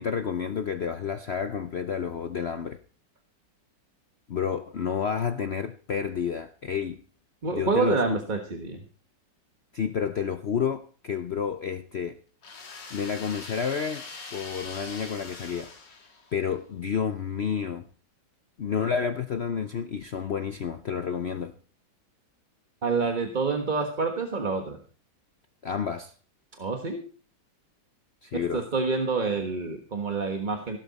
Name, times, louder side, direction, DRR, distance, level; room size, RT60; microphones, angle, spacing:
voice 1, 0.0-2.8 4.3-7.0 7.5-8.2 9.7-12.2 12.9-15.7 16.3-17.9 18.6-21.5 25.6-26.1 28.2-28.6, left 7 dB, 55° left, 0.7 m, -30 dB
voice 2, 7.4-8.8 22.8-24.8 26.6-27.0 28.5-30.8, right 4 dB, 30° right, 1.4 m, -27 dB
sound 1, 12.4-16.5, left 4 dB, 75° left, 2.8 m, -42 dB
16.0 x 12.5 x 4.2 m
omnidirectional pair, 1.9 m